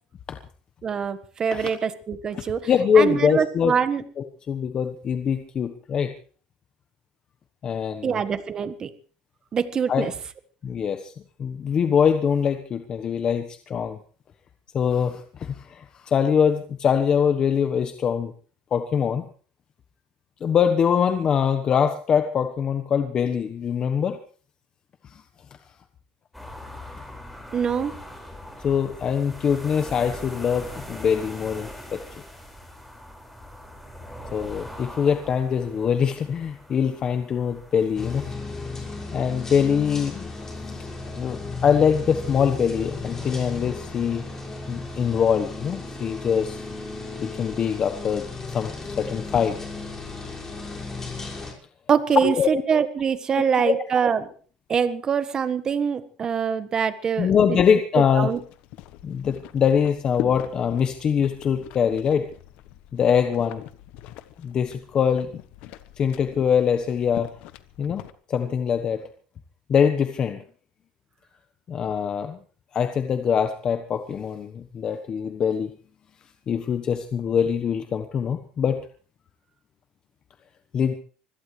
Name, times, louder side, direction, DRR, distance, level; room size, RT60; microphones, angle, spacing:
voice 1, 0.8-2.7 2.9-4.0 8.0-8.9 9.5-10.1 27.5-28.0 51.9-54.3 54.7-57.6 58.2-58.4, right 7 dB, 35° right, 11 dB, 1.5 m, -24 dB
voice 2, 2.7-3.7 4.2-6.1 7.6-8.2 9.9-10.1 10.6-11.1 11.4-14.0 14.7-18.3 18.7-19.3 20.4-24.2 25.0-25.2 28.6-32.0 34.3-38.3 39.1-40.3 41.1-44.3 44.7-46.6 47.2-49.6 52.2-52.5 53.3-53.7 57.2-58.3 59.0-62.3 62.9-63.6 64.4-65.3 66.0-67.3 67.8-68.0 68.3-69.0 69.7-70.4 71.7-72.4 72.7-75.7 76.5-78.8 80.7-80.9, left 7 dB, 40° left, 7 dB, 1.2 m, -23 dB
sound 1, 26.3-38.3, left 1 dB, 5° left, 5.5 m, -41 dB
sound 2, 38.0-51.5, left 3 dB, 20° left, 5.7 m, -35 dB
sound 3, 58.3-68.1, left 13 dB, 70° left, 1.1 m, -41 dB
24.5 x 17.0 x 3.3 m, 0.42 s
cardioid pair, 120°, 2 cm